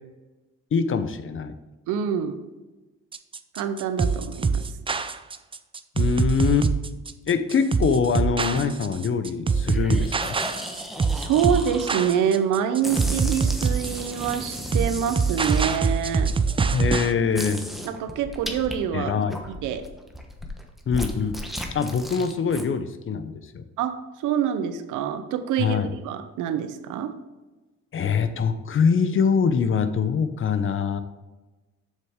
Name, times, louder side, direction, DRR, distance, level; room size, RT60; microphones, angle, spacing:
voice 1, 0.7-1.5 6.0-6.7 7.3-10.4 16.7-17.6 18.9-19.4 20.9-21.4 21.7-23.6 25.6-25.9 27.9-31.0, left 6 dB, 45° left, 11 dB, 0.7 m, -23 dB
voice 2, 1.9-2.4 3.5-4.6 11.1-16.3 17.8-19.1 19.5-19.9 23.8-24.0 24.2-27.1, right 8 dB, 90° right, 10 dB, 0.7 m, -26 dB
sound 1, 3.1-17.1, right 5 dB, 20° right, 0.4 m, -24 dB
sound 2, 8.4-8.9 9.7-12.4 12.8-16.4 16.9-17.0 17.3-18.8 19.1-22.6, equal, ahead, 1.1 m, -35 dB
7.4 x 6.5 x 3.6 m, 1.1 s
cardioid pair, 90°, 30 cm